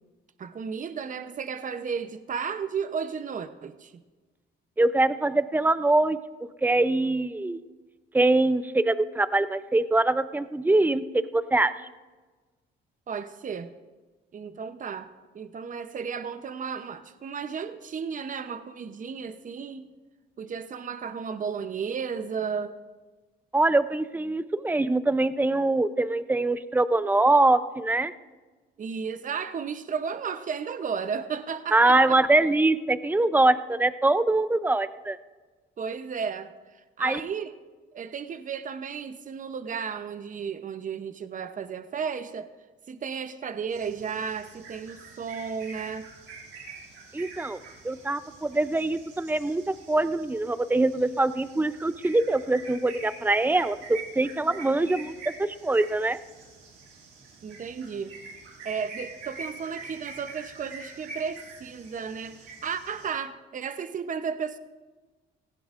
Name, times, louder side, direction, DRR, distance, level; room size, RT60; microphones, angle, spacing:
voice 1, 0.4-4.0 13.1-13.7 14.3-19.9 20.4-22.7 28.8-32.2 35.8-36.5 37.0-37.5 37.9-42.5 42.9-46.1 57.4-58.1 58.6-64.6, right 6 dB, 40° right, 10 dB, 0.8 m, -34 dB
voice 2, 4.8-6.2 6.6-7.6 8.1-11.7 23.5-28.1 31.7-35.2 37.0-37.2 47.1-47.6 47.8-49.6 49.9-56.2, right 2 dB, 10° right, 13 dB, 0.5 m, -23 dB
sound 1, 43.7-63.1, right 4 dB, 85° right, 5.1 m, -45 dB
18.5 x 15.5 x 2.5 m, 1.3 s
cardioid pair, 90°, 20 cm